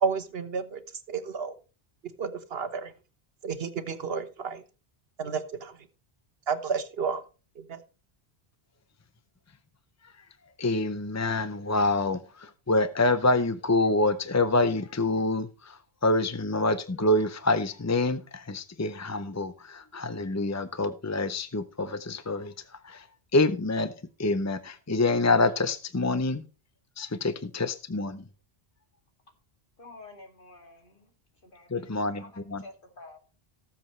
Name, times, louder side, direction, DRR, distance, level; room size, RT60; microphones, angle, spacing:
voice 1, 0.0-0.8 1.1-1.5 2.2-2.9 3.4-4.6 5.2-5.7 6.5-7.2 7.6-7.8, right 5 dB, 75° right, 1.3 m, -31 dB
voice 2, 10.6-22.5 22.8-23.1 23.3-23.9 24.2-26.4 27.0-28.2 31.7-32.2 32.5-32.6, left 2 dB, 25° left, 0.4 m, -26 dB
voice 3, 29.8-31.1 31.4-33.2, left 2 dB, 60° left, 2.7 m, -49 dB
18.5 x 7.4 x 3.2 m
omnidirectional pair, 1.0 m